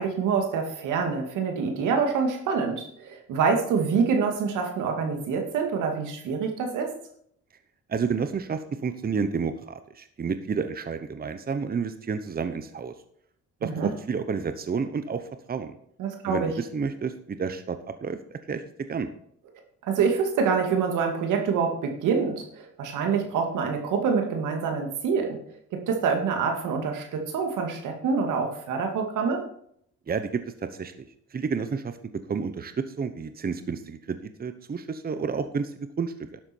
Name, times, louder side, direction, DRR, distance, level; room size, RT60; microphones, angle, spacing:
voice 1, 0.0-6.9 13.6-13.9 16.0-16.5 19.9-25.4 25.7-29.4, right 5 dB, 85° right, 3 dB, 2.2 m, -26 dB
voice 2, 7.9-12.9 13.6-15.8 16.2-18.2 18.5-18.6 18.9-19.1 30.1-32.0 32.3-36.4, right 5 dB, 30° right, 10 dB, 0.9 m, -30 dB
11.5 x 7.7 x 4.4 m, 0.67 s
cardioid pair, 90°, 30 cm